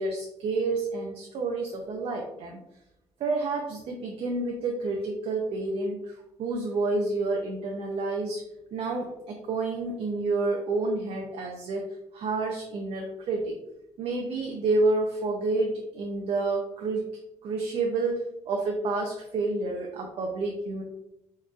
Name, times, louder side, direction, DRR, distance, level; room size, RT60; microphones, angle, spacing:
voice 1, 0.0-2.6 3.2-6.1 6.4-8.4 8.7-11.8 12.1-13.5 14.0-17.0 17.4-20.8, right 3 dB, 55° right, 1 dB, 0.5 m, -29 dB
4.5 x 3.1 x 2.3 m, 0.86 s
cardioid pair, 140°, 12 cm